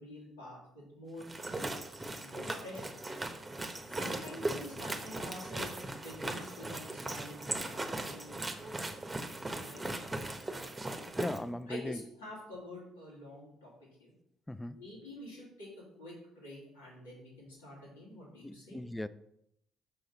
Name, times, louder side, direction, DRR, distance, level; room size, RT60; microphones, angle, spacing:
voice 1, 0.0-1.6 2.1-2.9 3.9-8.9 9.4-9.8 11.7-14.1 14.7-15.7 16.0-18.8, left 1 dB, 85° left, 2.9 m, -48 dB
sound 1, 1.2-11.4, right 2 dB, 15° right, 1.0 m, -38 dB
voice 2, 11.2-12.0 14.5-14.8 18.4-19.1, left 1 dB, 10° left, 0.4 m, -38 dB
6.5 x 5.7 x 4.1 m
figure-of-eight pair, 50°, 0 cm